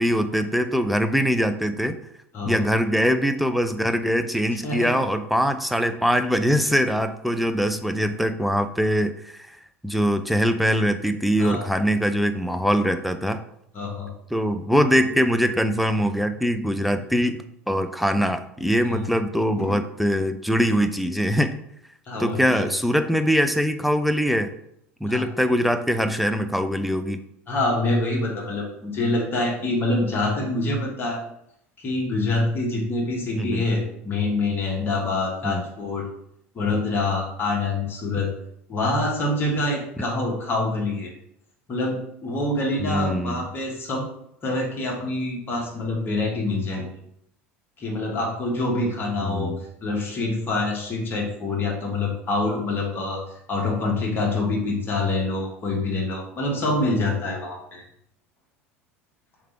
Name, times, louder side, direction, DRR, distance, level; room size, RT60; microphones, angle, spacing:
voice 1, 0.0-2.0 2.5-9.4 9.8-13.4 14.3-21.5 22.2-24.5 25.0-27.2 33.4-33.7 35.4-35.7 42.8-43.4 49.2-49.6, equal, ahead, 8 dB, 0.4 m, -22 dB
voice 2, 4.6-5.0 11.4-11.6 13.7-14.1 18.8-19.0 19.6-19.7 22.1-22.7 25.1-25.5 27.5-31.2 31.8-36.0 36.5-38.3 38.7-41.1 41.7-44.1 44.4-47.0 47.8-49.5 49.8-53.2 53.5-57.8, left 2 dB, 30° left, -2 dB, 1.2 m, -26 dB
3.6 x 3.3 x 4.3 m, 0.75 s
figure-of-eight pair, 70°, 7 cm